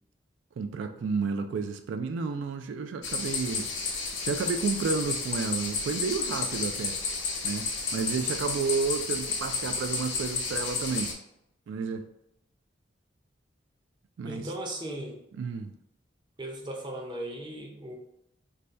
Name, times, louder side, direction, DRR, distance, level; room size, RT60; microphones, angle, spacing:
voice 1, 0.6-3.7 4.2-7.0 7.4-7.6 7.9-11.1 11.7-12.0 14.2-14.4 15.4-15.7, right 5 dB, 85° right, 7 dB, 0.3 m, -31 dB
sound 1, 3.0-11.1, left 4 dB, 90° left, 0.8 m, -32 dB
voice 2, 14.2-15.2 16.4-18.0, right 1 dB, 25° right, 0 dB, 0.5 m, -37 dB
4.0 x 2.2 x 3.2 m, 0.79 s
head